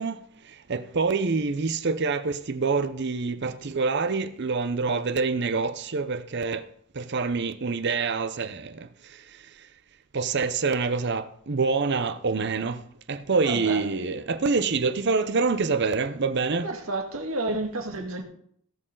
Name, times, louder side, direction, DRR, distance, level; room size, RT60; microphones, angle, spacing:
voice 1, 0.0-6.7 6.9-9.7 10.1-12.8 13.1-16.7, right 4 dB, 55° right, 0.7 m, -26 dB
voice 2, 13.4-13.9 16.6-18.2, right 2 dB, 75° right, 2.0 m, -30 dB
17.5 x 6.4 x 3.9 m
head